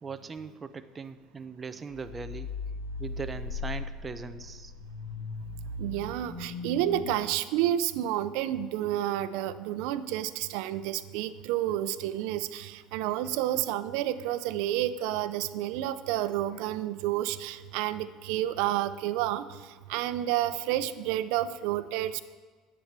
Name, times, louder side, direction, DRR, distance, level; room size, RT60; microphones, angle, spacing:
voice 1, 0.0-2.5 3.0-4.7, right 5 dB, 20° right, 10 dB, 0.5 m, -40 dB
sound 1, 1.9-7.2, left 3 dB, 65° left, 4.9 m, -38 dB
voice 2, 5.8-22.2, right 12 dB, 75° right, 13 dB, 0.6 m, -30 dB
11.0 x 8.6 x 7.4 m, 1.4 s
cardioid pair, 145°, 0 cm